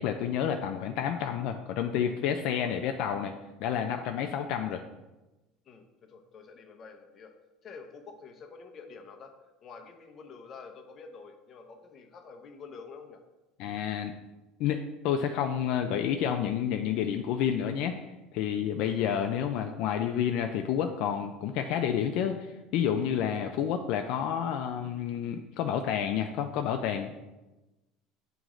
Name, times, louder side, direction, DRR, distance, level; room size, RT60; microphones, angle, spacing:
voice 1, 0.0-3.3 3.6-4.8 13.6-14.1 14.6-18.0 18.3-27.1, left 8 dB, 65° left, 5 dB, 0.4 m, -29 dB
voice 2, 5.7-7.3 7.6-9.4 9.6-13.2, left 5 dB, 35° left, 3 dB, 0.8 m, -48 dB
8.9 x 3.0 x 3.7 m, 1.1 s
cardioid pair, 135°, 0 cm